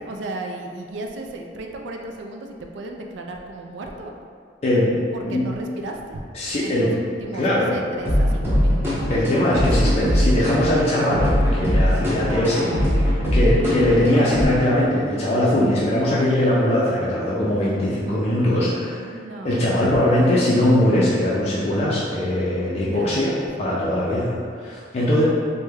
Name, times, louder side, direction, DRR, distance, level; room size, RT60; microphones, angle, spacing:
voice 1, 0.0-4.1 5.1-6.2 6.6-9.0 9.7-9.9 11.7-13.0 19.0-20.3 22.9-24.2 25.1-25.2, right 2 dB, 70° right, 2 dB, 0.3 m, -35 dB
voice 2, 4.6-5.4 6.3-6.9 7.3-7.7 9.1-12.7 13.3-19.1 19.4-23.3 23.6-25.2, left 1 dB, 35° left, -7 dB, 0.4 m, -21 dB
sound 1, 8.0-14.4, equal, 15° right, 0.7 m, -21 dB
3.3 x 2.1 x 3.3 m, 2.2 s
head